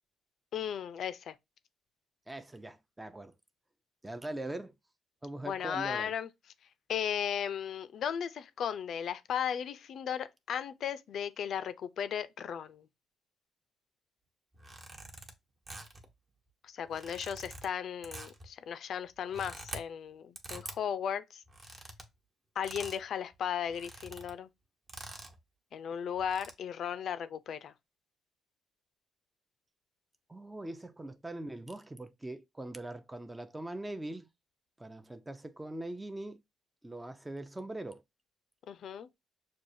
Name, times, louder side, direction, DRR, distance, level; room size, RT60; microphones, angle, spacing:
voice 1, 0.5-1.3 5.4-6.3 6.9-12.9 16.6-21.4 22.6-24.5 25.7-27.7 38.7-39.1, left 8 dB, 65° left, 0.4 m, -36 dB
voice 2, 2.3-3.3 4.0-4.7 5.2-6.1 30.3-34.3 34.8-36.4 36.8-38.0, right 1 dB, 15° right, 0.5 m, -41 dB
sound 1, 14.5-15.3 15.7-16.1 16.8-17.7 18.0-18.5 19.1-19.8 20.4-20.8 21.5-22.1 22.6-23.0 23.3-23.4 23.7-24.3 24.9-25.4 26.1-26.5, right 2 dB, 30° right, 1.0 m, -46 dB
6.2 x 2.3 x 2.7 m
cardioid pair, 90°, 0 cm